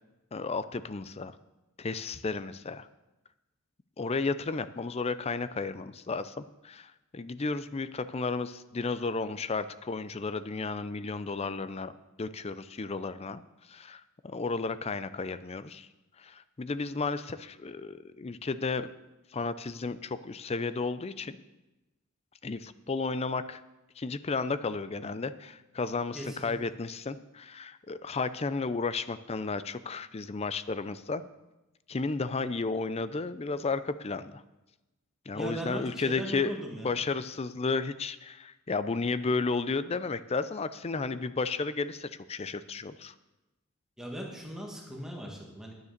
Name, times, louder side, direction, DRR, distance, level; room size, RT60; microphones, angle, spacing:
voice 1, 0.3-1.4 1.8-2.9 4.0-13.4 13.7-15.9 16.2-18.9 19.3-21.4 22.4-23.6 24.0-31.3 31.9-34.4 35.3-43.1, left 4 dB, 30° left, 13 dB, 0.5 m, -33 dB
voice 2, 26.1-26.6 35.3-37.0 44.0-45.7, right 1 dB, ahead, -1 dB, 1.7 m, -39 dB
9.9 x 9.4 x 6.6 m, 1.0 s
head